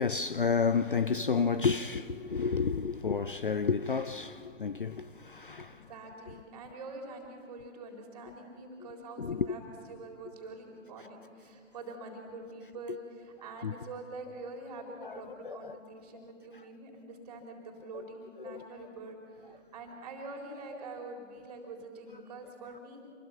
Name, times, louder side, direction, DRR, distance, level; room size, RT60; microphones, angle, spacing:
voice 1, 0.0-5.9 9.2-9.6 13.6-13.7 14.9-15.8 18.4-18.6, left 5 dB, 40° left, 0.6 m, -31 dB
voice 2, 5.7-9.6 9.9-23.0, right 2 dB, 30° right, 3.7 m, -45 dB
27.0 x 21.5 x 5.8 m
figure-of-eight pair, 145°, 39 cm